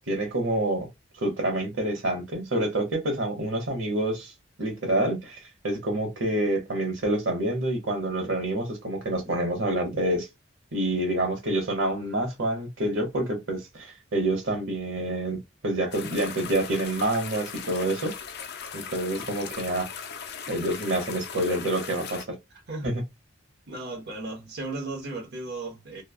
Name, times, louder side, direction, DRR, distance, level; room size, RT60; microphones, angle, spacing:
voice 1, 0.1-0.9 1.2-4.3 4.6-5.4 5.6-10.3 10.7-18.1 18.7-19.8 20.5-22.2 22.8-22.9, right 1 dB, 80° right, 1.0 m, -27 dB
sound 1, 15.9-22.2, left 7 dB, 60° left, 0.5 m, -39 dB
voice 2, 23.7-26.0, right 2 dB, 60° right, 1.0 m, -35 dB
3.1 x 2.2 x 2.3 m
head